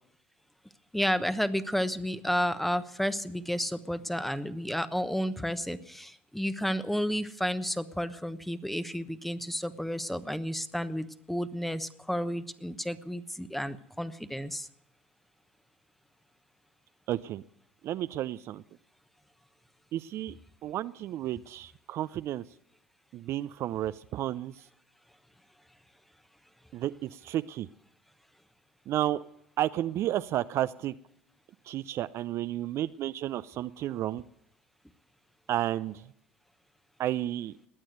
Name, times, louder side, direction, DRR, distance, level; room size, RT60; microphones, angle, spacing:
voice 1, 0.9-14.7, equal, 5° left, 12 dB, 1.0 m, -31 dB
voice 2, 17.1-17.4 17.8-18.6 19.9-20.4 20.6-22.4 23.1-24.5 26.7-27.7 28.9-29.2 29.6-30.9 31.7-34.2 35.5-36.0 37.0-37.5, right 13 dB, 50° right, 13 dB, 0.5 m, -32 dB
20.5 x 9.0 x 7.9 m, 0.74 s
hypercardioid pair, 75°, 6 cm